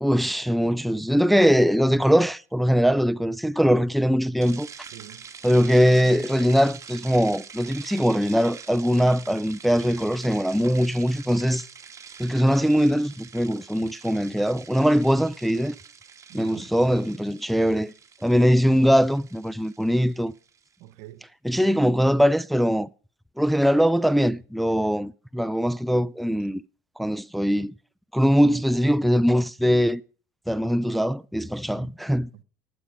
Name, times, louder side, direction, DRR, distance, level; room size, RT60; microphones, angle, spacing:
voice 1, 0.0-4.7 5.4-11.6 12.2-15.7 16.3-17.9 18.2-20.3 21.4-22.9 23.4-26.6 27.0-27.7 28.1-30.0 30.5-32.3, equal, ahead, 0.4 m, -21 dB
sound 1, 4.4-20.7, right 6 dB, 30° right, 1.7 m, -45 dB
voice 2, 4.8-5.2 16.3-16.7 20.8-21.2 21.5-21.8 31.8-32.0 32.3-32.4, right 14 dB, 70° right, 1.0 m, -46 dB
12.5 x 8.3 x 5.1 m
hypercardioid pair, 85°, 10 cm